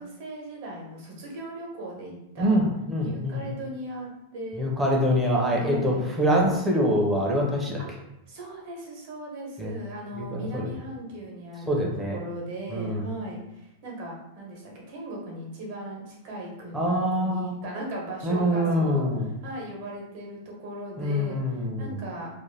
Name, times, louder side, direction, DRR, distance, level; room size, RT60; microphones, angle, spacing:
voice 1, 0.0-2.6 3.0-4.6 5.5-6.1 7.8-7.9 8.3-16.8 17.2-19.0 19.4-22.3, right 1 dB, 55° right, -2 dB, 1.0 m, -38 dB
voice 2, 2.4-3.4 4.6-7.8 9.6-9.7 10.1-10.7 11.7-12.2 12.7-13.0 16.7-17.5 18.2-19.3 21.0-21.9, equal, 10° right, -2 dB, 0.6 m, -25 dB
2.5 x 2.1 x 3.2 m, 0.89 s
supercardioid pair, 140°, 0 cm